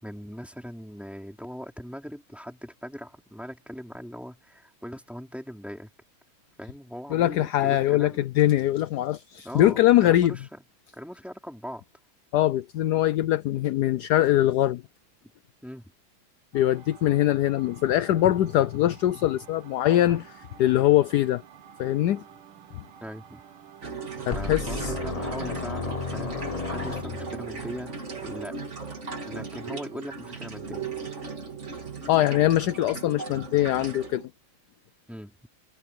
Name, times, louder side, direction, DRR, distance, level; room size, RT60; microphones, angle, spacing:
voice 1, 0.0-5.9 6.6-8.3 9.4-10.6 10.9-11.8 15.6-15.9 23.0-23.4 24.3-26.4 26.7-28.5 29.3-30.9 35.1-35.5, equal, ahead, 4.6 m, -40 dB
voice 2, 7.1-10.4 12.3-14.8 16.5-21.4 21.8-22.2 22.7-22.8 24.3-24.9 32.1-34.2, left 13 dB, 70° left, 1.0 m, -22 dB
sound 1, 16.5-27.5, right 8 dB, 85° right, 2.1 m, -50 dB
sound 2, 23.8-34.3, right 4 dB, 35° right, 2.5 m, -37 dB
sound 3, 24.3-27.6, left 4 dB, 25° left, 0.8 m, -33 dB
omnidirectional pair, 2.3 m